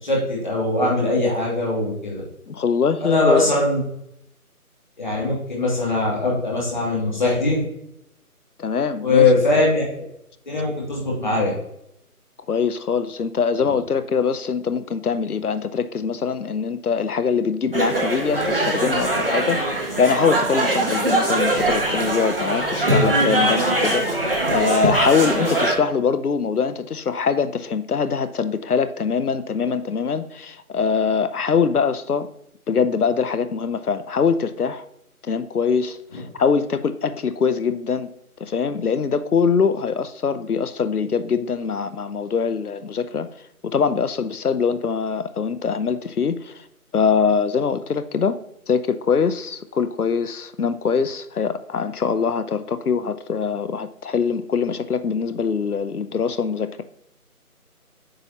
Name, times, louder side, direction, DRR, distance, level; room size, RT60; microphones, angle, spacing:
voice 1, 0.0-2.2 3.0-3.8 5.0-7.6 9.0-9.8 10.5-11.5, left 2 dB, 30° left, -4 dB, 2.6 m, -21 dB
voice 2, 2.5-3.4 8.6-9.3 12.5-19.7 20.0-32.3 32.7-34.8 35.2-38.1 38.4-43.3 43.6-46.6 46.9-56.8, left 6 dB, 75° left, 13 dB, 0.8 m, -23 dB
sound 1, 17.7-25.7, right 1 dB, 40° right, 1.2 m, -21 dB
8.9 x 5.3 x 2.9 m, 0.78 s
figure-of-eight pair, 170°, 45 cm